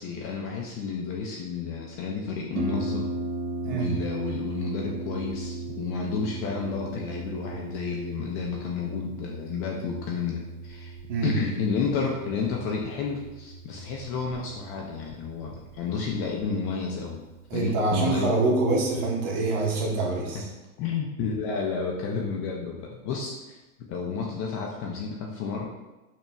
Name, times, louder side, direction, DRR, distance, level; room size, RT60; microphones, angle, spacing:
voice 1, 0.0-3.1 3.6-10.9 11.2-17.2 17.5-18.3 20.8-23.6 23.9-25.7, left 5 dB, 30° left, -1 dB, 0.4 m, -31 dB
Harp, 2.6-20.0, right 3 dB, 85° right, 0.8 m, -37 dB
voice 2, 3.6-4.0 11.1-11.4 17.5-20.4, right 3 dB, 45° right, -1 dB, 1.1 m, -25 dB
5.5 x 2.9 x 2.2 m, 1.1 s
hypercardioid pair, 125°, 45 cm